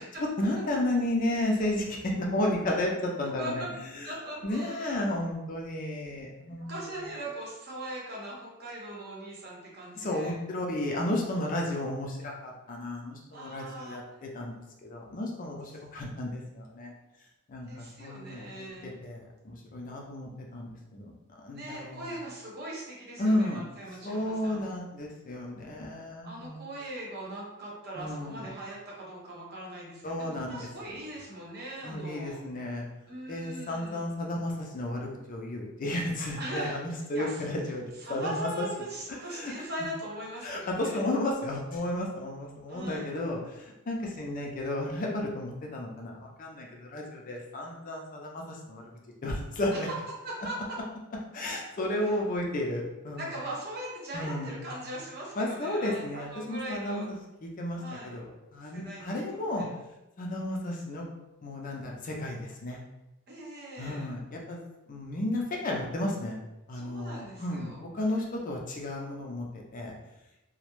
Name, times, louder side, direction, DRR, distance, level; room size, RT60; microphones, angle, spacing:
voice 1, 0.0-3.6 4.0-4.1 4.4-6.7 10.0-14.5 14.8-16.9 17.5-22.1 23.2-23.6 24.0-26.5 28.0-28.5 30.0-30.7 31.8-32.9 33.3-38.7 39.3-39.6 40.4-49.9 51.3-53.4 54.1-54.6 55.4-58.2 58.5-59.7 60.2-61.0 61.4-62.8 63.8-64.6 64.9-66.4 66.7-69.9, left 1 dB, 35° left, 0 dB, 0.4 m, -33 dB
voice 2, 4.0-4.9 6.6-10.3 13.3-14.0 17.6-19.0 21.5-24.6 26.2-32.4 33.1-34.0 36.4-36.8 37.1-37.4 38.0-41.0 42.7-43.1 49.7-49.9 50.2-50.8 52.0-52.2 53.2-57.1 57.7-58.2 58.7-59.2 59.6-59.7 63.3-64.1 66.7-67.8, right 1 dB, 45° right, -4 dB, 0.7 m, -40 dB
2.2 x 2.0 x 2.9 m, 0.96 s
head